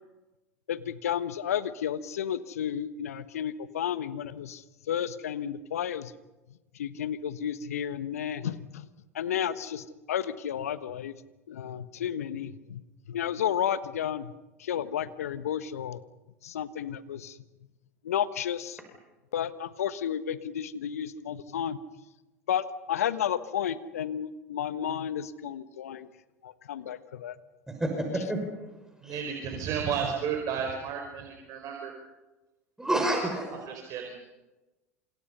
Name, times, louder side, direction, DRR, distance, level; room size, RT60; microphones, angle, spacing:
voice 1, 0.7-6.1 6.7-8.9 9.1-11.1 11.5-12.8 13.1-14.3 14.6-16.0 16.4-17.4 18.0-18.8 19.3-21.8 22.5-26.1 26.4-27.4, left 9 dB, 75° left, 14 dB, 1.3 m, -32 dB
voice 2, 27.8-28.4 29.0-29.1 32.8-33.7, right 1 dB, 5° right, 3 dB, 5.9 m, -28 dB
voice 3, 29.0-31.9 33.5-34.2, right 7 dB, 45° right, 3 dB, 4.6 m, -33 dB
28.5 x 27.0 x 5.6 m, 1.1 s
figure-of-eight pair, 80°, 8 cm